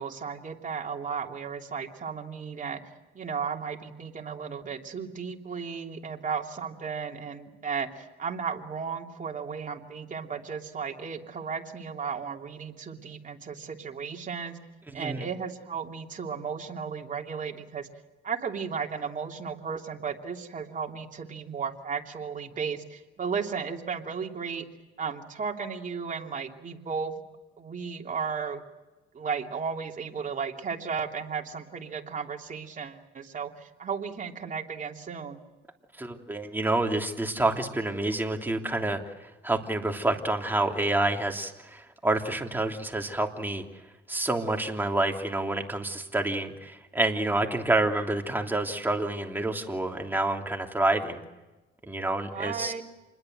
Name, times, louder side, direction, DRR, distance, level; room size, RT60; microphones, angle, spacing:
voice 1, 0.0-2.8 3.1-14.6 14.9-17.9 18.2-24.6 25.0-27.2 27.6-28.6 29.1-35.4 52.3-52.8, right 6 dB, 40° right, 2 dB, 3.0 m, -34 dB
voice 2, 14.9-15.3 36.0-43.6 44.1-51.2 51.8-52.7, right 2 dB, 10° right, 2 dB, 3.1 m, -28 dB
28.0 x 21.0 x 7.9 m, 1.1 s
cardioid pair, 90°, 20 cm